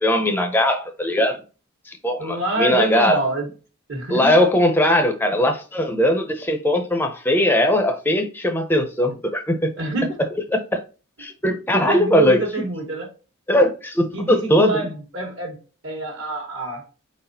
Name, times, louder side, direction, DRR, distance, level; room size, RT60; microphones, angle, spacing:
voice 1, 0.0-1.4 1.9-3.2 4.1-9.7 10.5-10.8 11.2-12.4 13.5-14.8, left 1 dB, 10° left, 0.5 m, -19 dB
voice 2, 2.2-3.5 3.9-4.4 9.7-10.2 11.7-13.1 14.1-15.6 15.8-16.8, right 2 dB, 60° right, 1.3 m, -26 dB
4.4 x 4.0 x 2.7 m
head